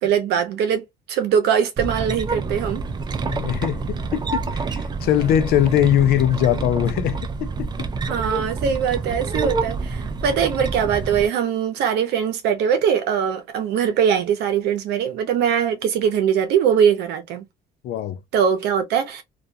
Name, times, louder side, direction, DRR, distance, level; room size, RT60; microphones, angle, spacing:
voice 1, 0.0-2.8 8.1-17.4 18.3-19.2, right 8 dB, 80° right, 0.7 m, -21 dB
sound 1, 1.8-11.3, right 4 dB, 25° right, 0.4 m, -28 dB
voice 2, 3.2-7.7 17.8-18.2, left 11 dB, 65° left, 0.4 m, -21 dB
2.4 x 2.2 x 2.6 m
cardioid pair, 110°, 17 cm